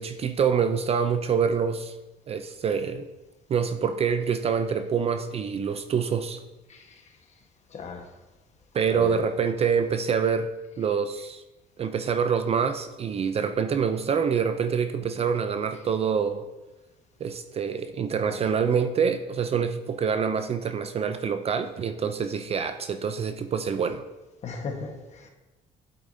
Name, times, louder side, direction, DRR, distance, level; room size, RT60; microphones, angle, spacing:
voice 1, 0.0-1.9 2.3-3.1 3.5-6.4 8.7-11.4 11.8-16.4 17.2-24.0, right 6 dB, 35° right, 9 dB, 0.4 m, -26 dB
voice 2, 7.7-8.0 9.0-9.2 24.4-25.3, left 4 dB, 40° left, 3 dB, 1.3 m, -36 dB
8.5 x 8.1 x 2.7 m, 1.1 s
cardioid pair, 110°, 17 cm